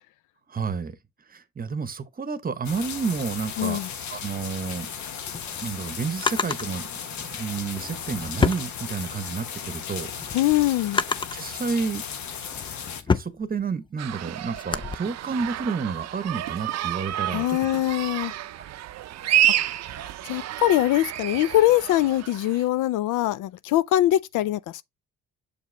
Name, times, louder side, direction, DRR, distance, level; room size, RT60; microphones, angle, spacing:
voice 1, 0.5-1.0 1.3-3.8 4.1-4.9 5.6-6.9 7.2-10.4 11.3-12.0 13.1-17.6, right 5 dB, 30° right, 0.9 m, -30 dB
sound 1, 2.6-13.0, left 7 dB, 70° left, 1.1 m, -36 dB
voice 2, 3.6-3.9 10.3-11.0 17.3-18.3 20.0-24.8, left 14 dB, 85° left, 0.5 m, -23 dB
Drawer open or close, 5.2-6.7 7.7-9.3 9.8-11.5 12.1-15.0, left 5 dB, 15° left, 0.3 m, -29 dB
sound 2, 14.0-22.7, right 12 dB, 60° right, 0.5 m, -29 dB
6.9 x 4.7 x 3.2 m
cardioid pair, 90°, 30 cm